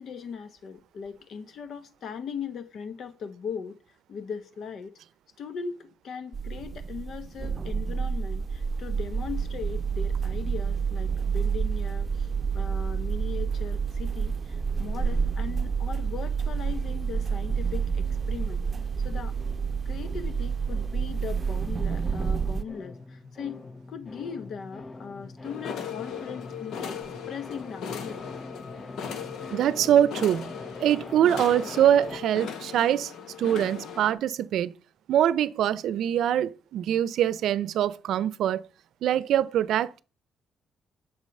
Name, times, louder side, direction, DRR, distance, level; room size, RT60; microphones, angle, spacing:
voice 1, 0.0-3.8 4.1-5.0 5.4-18.7 19.0-19.4 19.8-23.6 23.9-27.0 27.3-28.3, left 6 dB, 60° left, 1.2 m, -39 dB
sound 1, 6.3-22.6, right 6 dB, 35° right, 0.7 m, -29 dB
sound 2, 14.5-17.1 17.3-32.2, left 3 dB, 30° left, 0.7 m, -45 dB
sound 3, 25.4-34.1, left 7 dB, 80° left, 1.4 m, -38 dB
voice 2, 29.5-30.5 30.8-33.1 33.4-34.7 35.1-38.6 39.0-40.0, right 10 dB, 75° right, 0.6 m, -23 dB
8.2 x 6.3 x 5.4 m
cardioid pair, 90°, 0 cm